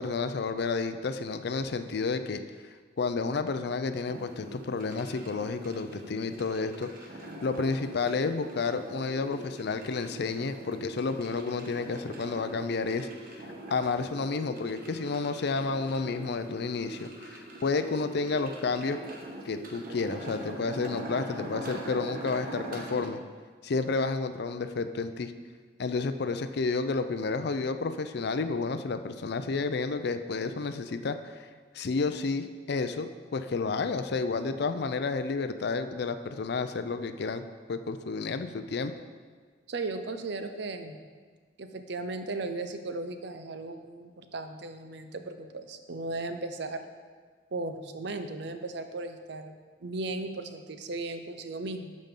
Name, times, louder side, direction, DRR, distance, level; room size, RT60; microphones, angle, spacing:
voice 1, 0.0-2.4 3.0-6.9 7.4-13.1 13.7-19.0 19.5-23.2 23.6-25.3 25.8-31.5 31.7-37.4 37.7-38.9, left 4 dB, 65° left, 10 dB, 0.5 m, -31 dB
sound 1, 4.1-23.1, right 1 dB, 55° right, 1.2 m, -43 dB
voice 2, 39.7-41.0 41.6-46.8 47.5-49.5 49.8-52.0, right 2 dB, 70° right, 8 dB, 0.7 m, -36 dB
12.5 x 5.3 x 3.8 m, 1.5 s
head